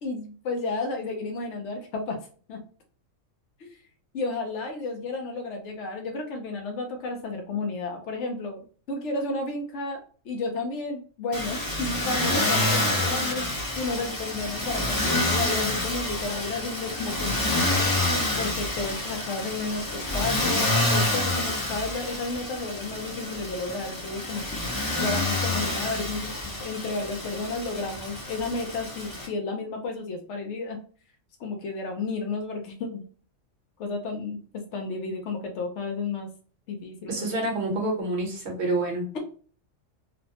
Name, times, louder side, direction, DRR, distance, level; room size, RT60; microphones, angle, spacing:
voice 1, 0.0-2.2 2.5-2.6 3.6-3.7 4.1-8.6 8.9-13.5 13.8-17.9 18.4-24.5 24.9-30.8 31.4-33.0 33.8-36.3 36.7-37.5, left 3 dB, 70° left, 3 dB, 0.9 m, -32 dB
Motor vehicle (road), 11.3-29.3, left 1 dB, 25° left, 0.5 m, -28 dB
voice 2, 37.1-39.1, right 2 dB, 60° right, -1 dB, 1.1 m, -27 dB
3.1 x 2.0 x 2.8 m, 0.42 s
omnidirectional pair, 1.3 m